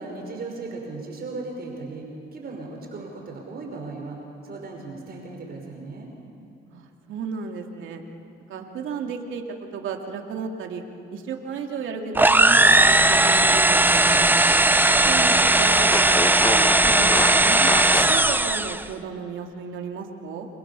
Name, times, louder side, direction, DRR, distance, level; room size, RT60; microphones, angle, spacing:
voice 1, 0.0-4.2 4.4-6.1, right 3 dB, 50° right, 1 dB, 5.5 m, -36 dB
voice 2, 6.7-8.0 8.5-9.4 9.7-10.8 11.1-14.3 14.9-16.2 16.4-17.8 18.1-20.5, right 5 dB, 80° right, 3 dB, 2.8 m, -33 dB
sound 1, 12.1-18.8, right 2 dB, 10° right, 0.9 m, -17 dB
Fart, 12.9-15.0 15.3-15.4 15.9-18.2, left 3 dB, 15° left, 1.2 m, -31 dB
29.0 x 27.0 x 7.1 m, 2.8 s
cardioid pair, 90°, 20 cm